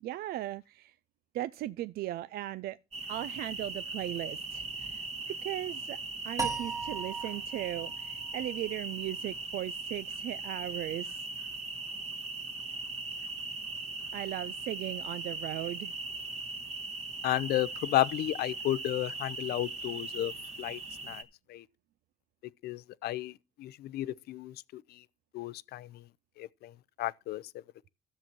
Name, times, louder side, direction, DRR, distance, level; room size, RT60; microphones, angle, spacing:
voice 1, 0.0-0.9 1.3-2.8 3.1-5.0 5.4-6.0 6.2-11.2 14.1-15.9, right 14 dB, 65° right, 0.4 m, -37 dB
sound 1, 2.9-21.2, right 3 dB, 40° right, 1.7 m, -39 dB
sound 2, 6.4-9.6, right 5 dB, 15° right, 1.4 m, -38 dB
voice 2, 17.2-20.3 20.6-21.2 21.5-21.6 22.6-25.0 25.3-26.0 26.4-26.7 27.0-27.4, left 14 dB, 70° left, 0.6 m, -33 dB
13.0 x 7.2 x 4.5 m
cardioid pair, 110°, 17 cm